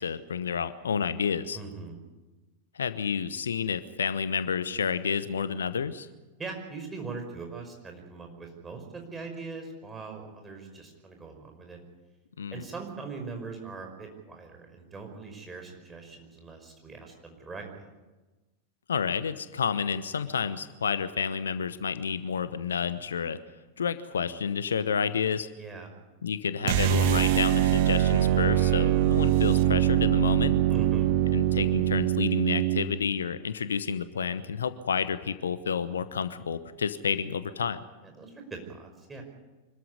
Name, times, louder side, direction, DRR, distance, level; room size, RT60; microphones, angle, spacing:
voice 1, 0.0-1.6 2.7-6.1 12.4-12.6 18.9-23.4 23.8-25.5 26.2-30.6 31.3-37.8, left 6 dB, 70° left, 14 dB, 0.9 m, -30 dB
voice 2, 1.5-2.0 6.4-11.8 12.5-17.9 25.6-25.9 30.7-31.1 38.0-39.2, right 4 dB, 15° right, 3 dB, 5.4 m, -41 dB
sound 1, 26.6-32.9, right 12 dB, 50° right, 1.3 m, -23 dB
25.0 x 14.0 x 9.7 m, 1.2 s
figure-of-eight pair, 90°, 0 cm